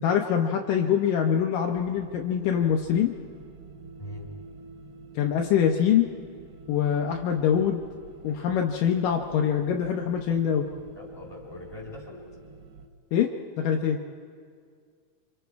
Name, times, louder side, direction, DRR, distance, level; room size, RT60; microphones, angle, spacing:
voice 1, 0.0-3.1 5.2-6.1 6.7-7.8 8.2-10.6 13.1-13.3 13.6-14.0, left 8 dB, 75° left, 2 dB, 2.4 m, -24 dB
sound 1, 1.6-12.9, right 3 dB, 75° right, 1.1 m, -47 dB
voice 2, 4.0-4.3 10.9-12.2, left 2 dB, 5° left, 1 dB, 3.2 m, -41 dB
28.0 x 25.0 x 4.7 m, 2.1 s
omnidirectional pair, 4.2 m